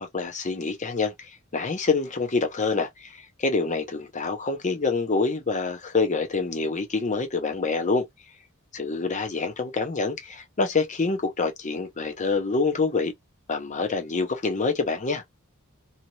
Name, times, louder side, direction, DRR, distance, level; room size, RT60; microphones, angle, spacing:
voice 1, 0.1-1.1 1.5-3.1 3.4-8.0 8.7-13.1 13.5-15.2, left 4 dB, 35° left, 0.8 m, -26 dB
2.8 x 2.5 x 3.0 m
head